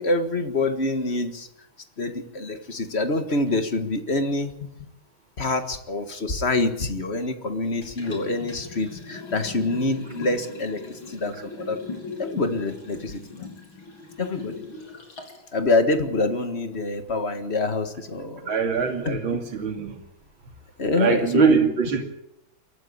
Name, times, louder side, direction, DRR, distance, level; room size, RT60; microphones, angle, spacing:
voice 1, 0.0-1.5 2.0-4.7 5.4-11.8 12.2-13.5 14.2-14.6 15.5-18.5 19.1-19.2 20.8-21.7, left 2 dB, 35° left, 9 dB, 1.8 m, -26 dB
Liquid, 7.8-15.5 15.9-16.0, left 3 dB, 90° left, 4.2 m, -39 dB
voice 2, 18.5-19.9 20.9-22.0, right 6 dB, 75° right, 5 dB, 3.3 m, -23 dB
22.5 x 14.0 x 8.6 m, 0.83 s
omnidirectional pair, 2.1 m